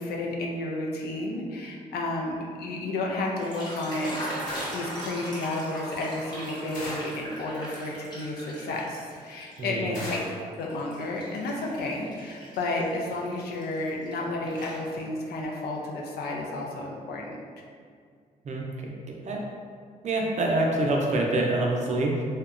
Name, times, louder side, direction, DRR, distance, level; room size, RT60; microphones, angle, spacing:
voice 1, 0.0-9.0 9.2-10.2 10.6-17.4, left 2 dB, 80° left, -1 dB, 0.5 m, -32 dB
sound 1, 3.2-9.6 10.0-14.1 14.5-15.3, equal, 25° left, 0.8 m, -40 dB
sound 2, 4.5-5.0 6.7-7.3 9.9-10.5, equal, 55° left, 1.0 m, -37 dB
voice 2, 18.4-18.9 19.3-19.4 20.0-22.2, right 2 dB, 45° right, 0 dB, 0.5 m, -26 dB
2.8 x 2.1 x 2.4 m, 2.1 s
cardioid pair, 65°, 16 cm